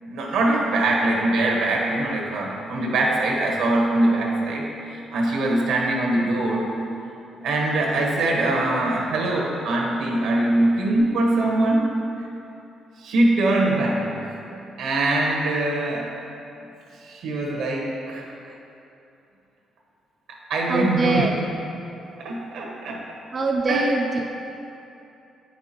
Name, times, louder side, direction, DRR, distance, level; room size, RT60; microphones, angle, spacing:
voice 1, 0.0-6.8 7.4-12.3 13.0-14.3 14.8-16.1 17.0-18.2 20.5-21.2 22.2-23.0 23.7-23.9, right 2 dB, 85° right, -1 dB, 1.3 m, -23 dB
voice 2, 20.7-21.4 23.3-24.2, right 2 dB, 40° right, 1 dB, 0.5 m, -23 dB
8.7 x 5.8 x 2.9 m, 2.8 s
cardioid pair, 90°, 0 cm